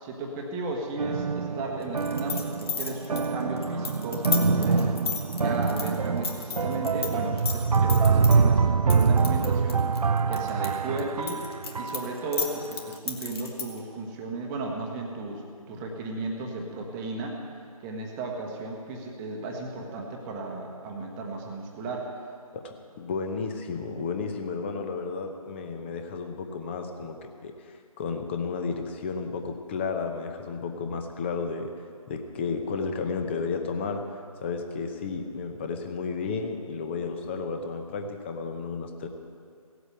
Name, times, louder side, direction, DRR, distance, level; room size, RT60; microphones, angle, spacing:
voice 1, 0.0-4.9 5.3-9.8 10.3-11.5 11.7-17.4 17.8-22.1, right 2 dB, 10° right, 1 dB, 1.1 m, -35 dB
sound 1, 1.0-12.4, right 5 dB, 80° right, 0.5 m, -25 dB
sound 2, 2.0-7.1 7.4-8.4 8.9-10.7 11.0-13.8, left 5 dB, 40° left, 1.7 m, -32 dB
voice 2, 22.5-27.2 27.4-31.7 32.1-34.0 34.4-39.1, left 5 dB, 20° left, 5 dB, 0.8 m, -32 dB
16.5 x 8.0 x 7.9 m, 2.3 s
figure-of-eight pair, 155°, 19 cm